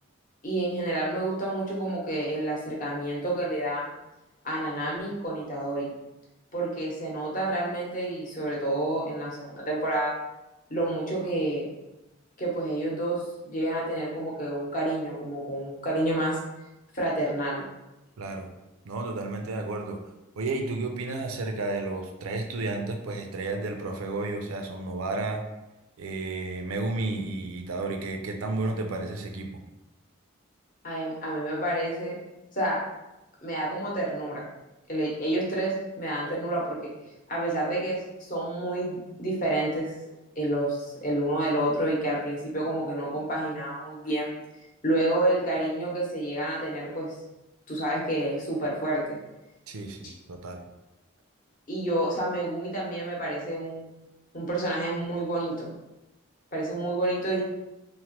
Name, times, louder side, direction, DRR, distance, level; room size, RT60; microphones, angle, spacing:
voice 1, 0.4-3.9 4.4-5.9 6.5-10.2 10.7-11.6 12.4-16.4 16.9-17.7 30.8-32.2 32.5-32.8 33.4-34.5 34.9-36.9 37.3-39.9 40.4-44.3 44.8-47.1 47.7-49.0 51.7-53.8 54.3-55.7 56.5-57.4, right 1 dB, 40° left, -4 dB, 0.8 m, -29 dB
voice 2, 18.2-18.5 18.9-20.0 20.4-25.4 26.0-29.6 49.7-50.6, right 2 dB, 85° right, 4 dB, 0.4 m, -32 dB
3.1 x 2.1 x 2.9 m, 0.98 s
head